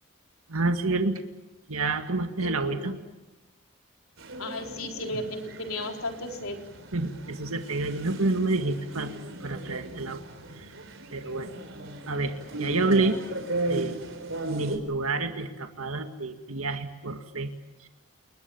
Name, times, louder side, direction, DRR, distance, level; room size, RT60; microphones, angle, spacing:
voice 1, 0.5-1.2 1.7-2.9 6.9-9.2 9.4-10.2 11.1-11.5 12.1-13.2 13.7-14.0 14.4-17.5 17.8-17.9, right 3 dB, 85° right, 7 dB, 2.1 m, -28 dB
voice 2, 2.4-3.0 4.4-6.6, left 1 dB, 85° left, 3 dB, 4.1 m, -35 dB
sound 1, 4.2-14.8, right 2 dB, 65° right, 4.1 m, -37 dB
29.5 x 21.0 x 7.2 m, 1.1 s
head